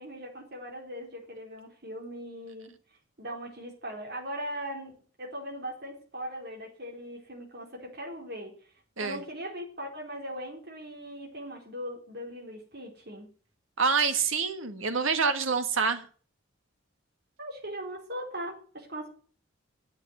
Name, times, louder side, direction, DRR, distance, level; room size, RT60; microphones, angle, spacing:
voice 1, 0.0-2.7 3.2-4.9 5.2-8.5 9.0-13.3 17.4-19.1, equal, 50° right, 4.1 m, -39 dB
voice 2, 13.8-16.0, right 5 dB, 75° right, 1.7 m, -26 dB
9.7 x 8.0 x 9.5 m
head